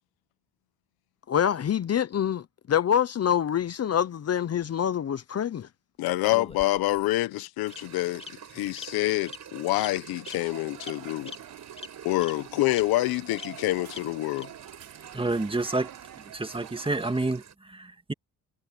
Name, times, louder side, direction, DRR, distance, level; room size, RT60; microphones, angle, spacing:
voice 1, 1.3-5.7, left 9 dB, 40° left, 1.0 m, -26 dB
voice 2, 6.0-8.2 8.5-11.3 12.0-14.5, left 18 dB, 80° left, 1.1 m, -27 dB
Bird vocalization bird call bird song, 6.3-7.0 7.7-7.8 8.2-8.3 8.8-8.9 9.3-9.4 9.8-9.9 10.2-10.4 10.8-10.9 11.3-11.4 11.8-11.9 12.2-12.3 12.7-12.8 13.4-13.5 13.9-14.0 14.4-14.5, left 3 dB, 15° left, 2.8 m, -41 dB
sound 1, 7.7-17.5, right 8 dB, 50° right, 7.0 m, -48 dB
sound 2, 10.1-17.1, right 11 dB, 70° right, 6.0 m, -48 dB
voice 3, 15.1-15.9 16.3-17.4 17.7-18.1, right 2 dB, 15° right, 2.1 m, -28 dB
supercardioid pair, 80°, 36 cm